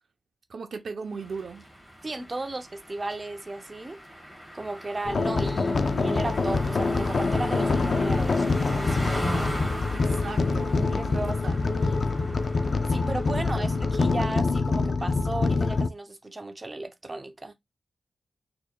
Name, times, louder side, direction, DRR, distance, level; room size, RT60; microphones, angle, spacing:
voice 1, 0.5-1.6 9.9-11.6 13.5-13.7, right 5 dB, 60° right, 0.7 m, -38 dB
sound 1, 1.1-14.1, equal, 5° left, 1.2 m, -38 dB
voice 2, 2.0-4.0 4.5-9.4 10.9-12.2 12.9-17.5, right 2 dB, 25° right, 0.6 m, -35 dB
sound 2, 5.0-15.9, left 3 dB, 50° left, 0.4 m, -25 dB
4.4 x 2.9 x 2.3 m
wide cardioid pair, 140°, 0 cm